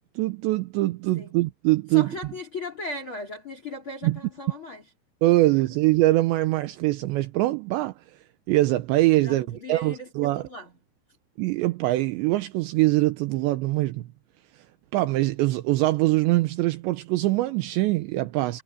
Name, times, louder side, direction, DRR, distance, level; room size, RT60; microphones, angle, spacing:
voice 1, 0.2-2.1 4.0-4.2 5.2-7.9 8.5-10.4 11.4-14.1 14.9-18.6, right 18 dB, 80° right, 2.7 m, -23 dB
voice 2, 1.9-4.8 9.2-10.1 10.4-10.7, left 1 dB, 25° left, 3.9 m, -37 dB
omnidirectional pair, 5.9 m